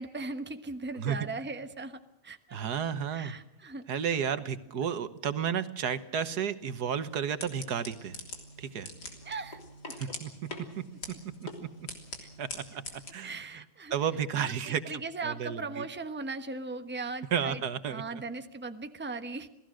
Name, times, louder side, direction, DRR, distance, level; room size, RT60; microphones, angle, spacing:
voice 1, 0.0-2.6 3.1-3.8 9.2-9.6 9.8-10.0 13.2-13.9 14.4-17.6 17.9-19.5, right 3 dB, 10° right, 8 dB, 1.1 m, -38 dB
voice 2, 2.5-3.3 3.9-8.2 8.6-8.9 10.0-10.3 10.8-10.9 11.6-11.7 12.4-12.6 13.1-13.6 13.9-15.8 17.3-18.2, right 8 dB, 80° right, 12 dB, 1.7 m, -32 dB
sound 1, 6.6-13.1, left 2 dB, 90° left, 4.0 m, -44 dB
28.0 x 18.5 x 6.3 m, 0.89 s
omnidirectional pair, 1.7 m